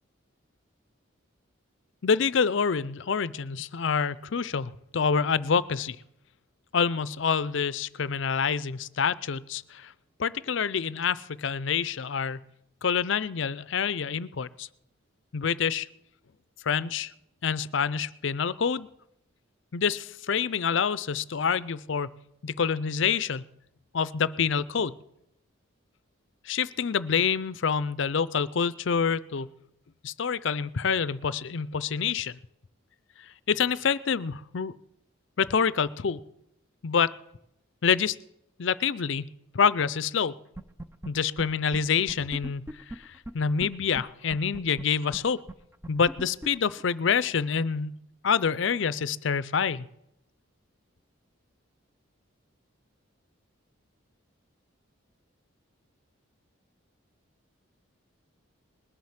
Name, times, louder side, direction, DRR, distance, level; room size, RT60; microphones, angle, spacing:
voice 1, 2.0-6.0 6.7-9.9 10.2-12.4 12.8-14.7 15.3-15.9 16.7-17.1 17.4-18.9 19.7-22.1 22.4-23.4 23.9-24.9 26.5-29.5 30.0-32.4 33.5-34.7 35.4-36.2 36.8-37.1 37.8-38.2 38.6-39.3 39.5-40.3 41.1-42.6 43.3-45.4 45.9-48.0 48.2-49.9, left 6 dB, 65° left, 18 dB, 0.5 m, -27 dB
sound 1, 40.5-41.1 41.4-41.5 41.7-41.8 42.1-43.7 43.9-44.0 44.3-47.3, right 1 dB, 10° right, 0.5 m, -39 dB
20.0 x 7.6 x 7.3 m, 0.81 s
head